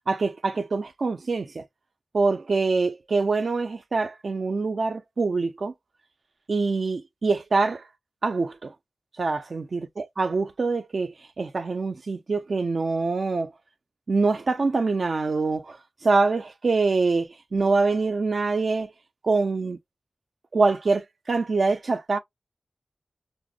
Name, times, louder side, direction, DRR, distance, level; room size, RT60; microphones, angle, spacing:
voice 1, 0.1-1.6 2.1-5.7 6.5-7.9 8.2-8.7 9.2-13.5 14.1-18.9 19.2-19.8 20.5-22.2, right 3 dB, 85° right, 0.4 m, -24 dB
5.0 x 2.0 x 2.3 m
wide cardioid pair, 50°, 0 cm